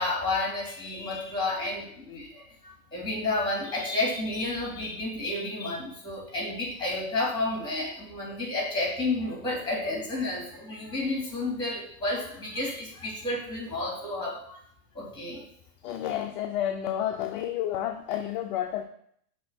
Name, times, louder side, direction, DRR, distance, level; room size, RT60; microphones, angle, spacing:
voice 1, 0.0-14.6 14.9-15.4, left 2 dB, 10° left, -3 dB, 3.0 m, -31 dB
voice 2, 15.8-18.8, left 11 dB, 35° left, 4 dB, 0.4 m, -30 dB
6.3 x 3.5 x 5.9 m, 0.66 s
hypercardioid pair, 120°, 48 cm